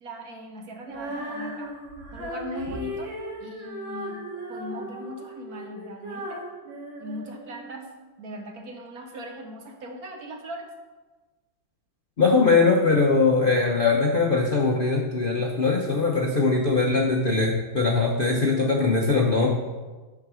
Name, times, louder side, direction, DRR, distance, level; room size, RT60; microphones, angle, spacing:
voice 1, 0.0-1.7 2.1-3.1 3.4-4.2 4.5-6.4 7.0-7.9 8.2-10.7, equal, 60° right, 3 dB, 1.3 m, -39 dB
Female singing, 0.9-7.9, equal, 85° right, 2.4 m, -37 dB
voice 2, 12.2-19.5, left 4 dB, 50° left, 0 dB, 0.6 m, -21 dB
8.4 x 4.9 x 6.1 m, 1.3 s
omnidirectional pair, 2.1 m